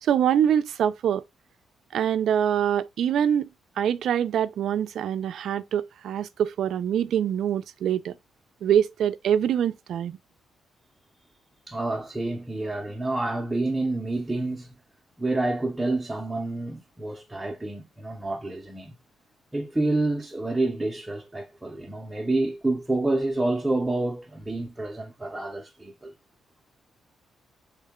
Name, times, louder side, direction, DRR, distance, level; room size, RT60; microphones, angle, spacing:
voice 1, 0.0-1.2 1.9-3.5 3.8-8.2 8.6-10.1, right 9 dB, 70° right, 0.3 m, -24 dB
voice 2, 11.7-14.8 15.2-19.0 19.5-26.1, right 2 dB, 10° right, 0.6 m, -28 dB
3.6 x 2.1 x 3.5 m
cardioid pair, 130°, 0 cm